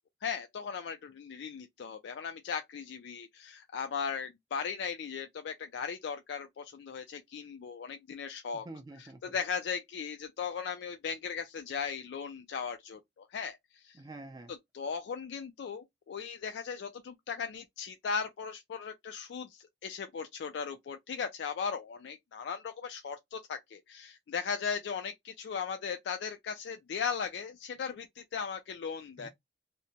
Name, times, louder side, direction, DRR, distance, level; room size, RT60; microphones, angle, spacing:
voice 1, 0.2-8.7 9.0-14.0 14.7-29.3, left 6 dB, 65° left, 0.3 m, -37 dB
voice 2, 8.5-9.4 13.9-14.5 29.2-29.3, right 2 dB, 20° right, 0.3 m, -47 dB
2.8 x 2.1 x 2.7 m
head